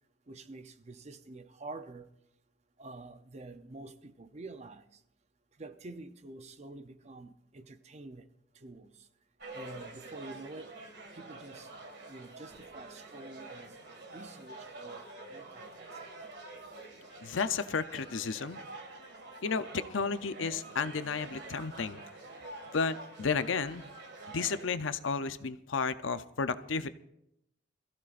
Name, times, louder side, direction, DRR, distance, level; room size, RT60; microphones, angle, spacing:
voice 1, 0.3-2.1 2.8-4.8 5.6-8.3 8.6-8.9 9.5-10.7 11.1-11.7 12.1-13.8 14.1-15.9, right 2 dB, 35° right, 0.6 m, -47 dB
sound 1, 9.4-24.7, right 2 dB, 55° right, 2.0 m, -47 dB
voice 2, 17.2-18.6 19.4-22.0 22.7-23.8 24.3-26.9, left 5 dB, 75° left, 0.6 m, -32 dB
25.5 x 14.5 x 2.5 m
head